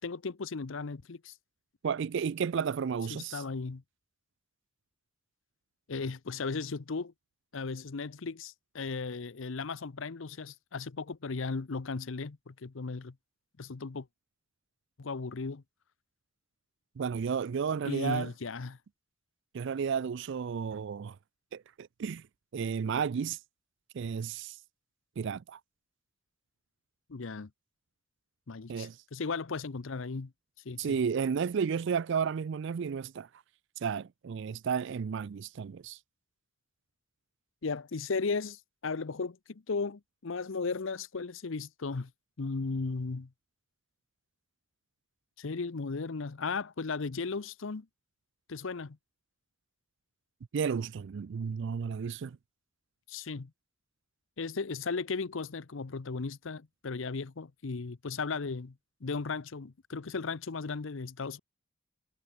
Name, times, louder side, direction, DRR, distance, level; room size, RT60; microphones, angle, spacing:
voice 1, 0.0-1.3 3.1-3.8 5.9-7.1 7.5-13.1 13.6-14.1 15.0-15.6 17.8-18.8 27.1-27.5 28.5-30.3 30.7-31.0 37.6-42.1 42.4-43.3 45.4-47.9 48.5-49.0 53.1-53.5 54.4-58.7 59.0-61.4, left 4 dB, 65° left, 0.7 m, -36 dB
voice 2, 1.8-3.4 17.0-18.3 19.5-21.2 21.5-22.2 22.5-23.4 23.9-24.6 25.2-25.6 28.7-29.0 30.8-33.3 33.8-36.0 50.5-52.4, right 6 dB, 60° right, 0.4 m, -32 dB
head